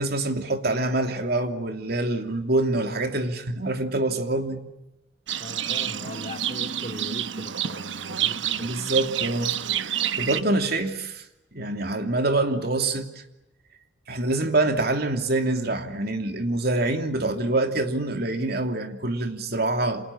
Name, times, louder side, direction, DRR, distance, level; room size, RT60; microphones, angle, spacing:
voice 1, 0.0-4.6 8.6-9.6 9.8-11.2 11.5-13.1 14.1-20.1, right 2 dB, 55° right, 2.9 m, -25 dB
voice 2, 5.3-8.8, left 1 dB, 35° left, 3.8 m, -40 dB
Livestock farm animals working animals, 5.3-10.4, right 10 dB, 75° right, 1.1 m, -28 dB
30.0 x 27.0 x 7.3 m
head